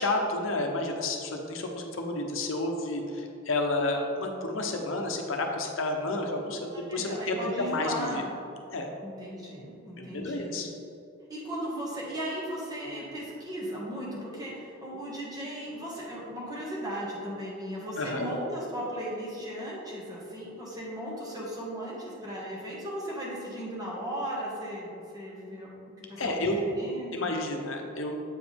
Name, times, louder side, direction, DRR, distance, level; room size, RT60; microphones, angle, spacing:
voice 1, 0.0-8.2 8.7-8.9 10.0-10.7 18.0-18.3 26.2-26.7 27.1-28.2, left 2 dB, 70° left, 3 dB, 0.8 m, -30 dB
voice 2, 6.6-8.3 9.0-10.6 11.3-25.7 26.0-27.3 27.6-27.7, equal, 20° right, -5 dB, 1.5 m, -36 dB
8.0 x 5.1 x 3.4 m, 2.7 s
head